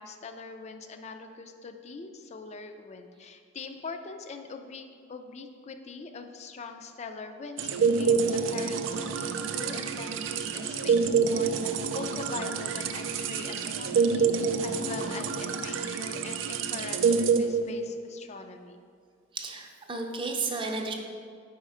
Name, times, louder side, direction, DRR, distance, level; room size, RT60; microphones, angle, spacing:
voice 1, 0.0-18.8, left 4 dB, 35° left, 7 dB, 0.4 m, -42 dB
sound 1, 7.6-18.1, right 5 dB, 75° right, 0.4 m, -27 dB
voice 2, 19.3-20.9, right 3 dB, 25° right, 2 dB, 0.5 m, -33 dB
4.9 x 4.2 x 4.8 m, 2.1 s
head